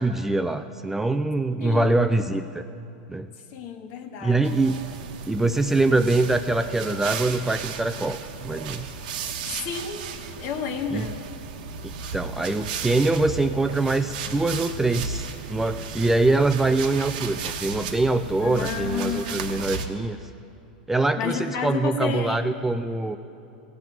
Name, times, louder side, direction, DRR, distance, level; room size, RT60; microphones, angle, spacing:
voice 1, 0.0-2.6 3.1-3.3 4.2-4.9 5.3-8.2 8.4-8.9 10.9-11.1 12.1-20.2 20.9-23.2, right 2 dB, 5° right, 9 dB, 0.3 m, -24 dB
voice 2, 1.6-2.1 3.5-4.5 9.4-10.0 10.4-11.2 18.4-19.5 21.2-22.4, left 6 dB, 50° left, 5 dB, 1.5 m, -31 dB
sound 1, 4.4-19.9, right 5 dB, 65° right, 1.1 m, -35 dB
16.5 x 5.8 x 9.2 m, 2.7 s
hypercardioid pair, 125°, 5 cm